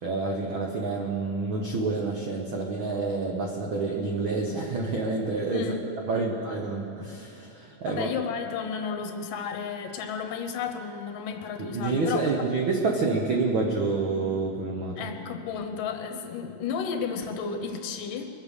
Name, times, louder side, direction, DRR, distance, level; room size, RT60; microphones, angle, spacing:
voice 1, 0.0-8.1 11.6-15.0, right 3 dB, 90° right, 0 dB, 1.1 m, -28 dB
voice 2, 5.5-5.8 6.1-6.3 7.9-12.4 15.0-18.3, left 6 dB, 75° left, 5 dB, 2.6 m, -33 dB
22.5 x 8.1 x 6.5 m, 2.9 s
omnidirectional pair, 4.0 m